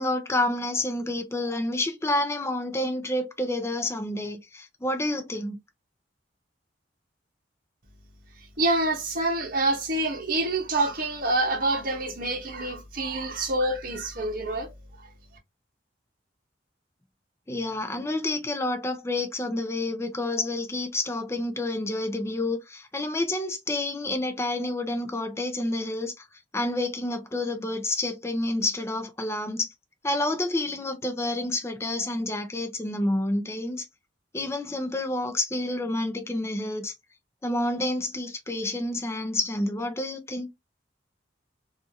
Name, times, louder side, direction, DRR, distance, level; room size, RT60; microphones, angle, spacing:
voice 1, 0.0-5.6 17.5-26.2 26.5-29.7 30.0-33.8 34.3-36.9 37.4-40.5, left 2 dB, 15° left, 0.5 m, -29 dB
voice 2, 8.4-14.7, right 2 dB, 50° right, 0.8 m, -27 dB
2.6 x 2.4 x 2.6 m
head